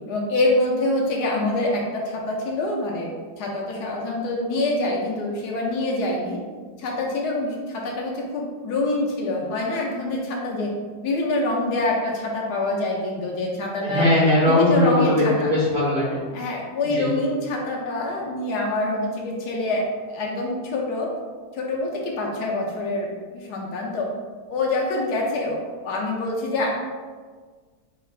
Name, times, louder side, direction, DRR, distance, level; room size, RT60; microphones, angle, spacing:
voice 1, 0.1-3.1 3.4-6.4 6.8-10.7 11.0-14.1 14.5-15.5 16.3-21.1 21.5-24.1 24.5-26.8, left 2 dB, 75° left, -1 dB, 1.2 m, -25 dB
voice 2, 13.8-16.2 17.0-17.1, left 1 dB, 45° right, -8 dB, 0.8 m, -19 dB
4.4 x 3.2 x 2.4 m, 1.5 s
omnidirectional pair, 1.9 m